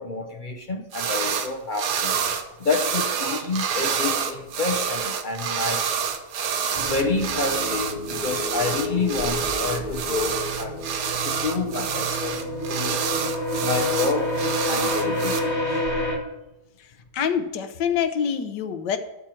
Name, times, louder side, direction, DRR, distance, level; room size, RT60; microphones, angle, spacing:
voice 1, 0.0-2.1 2.6-5.9 6.8-10.8 11.2-12.4 12.7-13.0 13.6-14.4 14.7-15.4 15.7-15.8, left 4 dB, 60° left, 4 dB, 0.5 m, -28 dB
sound 1, 0.9-1.5 1.7-15.4, right 7 dB, 75° right, 1.4 m, -27 dB
sound 2, 6.7-16.2, left 1 dB, 30° left, 1.4 m, -29 dB
voice 2, 17.1-19.0, left 7 dB, 85° left, 9 dB, 1.4 m, -25 dB
12.5 x 4.5 x 6.2 m, 1.0 s
omnidirectional pair, 1.8 m